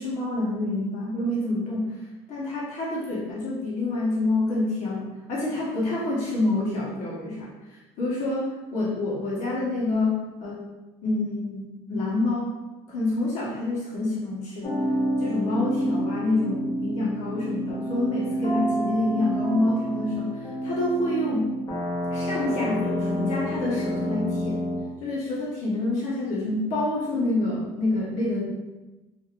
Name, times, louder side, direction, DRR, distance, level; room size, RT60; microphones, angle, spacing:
voice 1, 0.0-2.0 2.3-10.6 11.0-12.5 12.9-14.8 15.2-21.5 22.1-24.6 25.0-28.4, left 2 dB, 65° left, -5 dB, 0.9 m, -27 dB
sound 1, 14.6-24.8, equal, 30° left, 0.8 m, -28 dB
2.9 x 2.5 x 2.4 m, 1.1 s
cardioid pair, 120°, 13 cm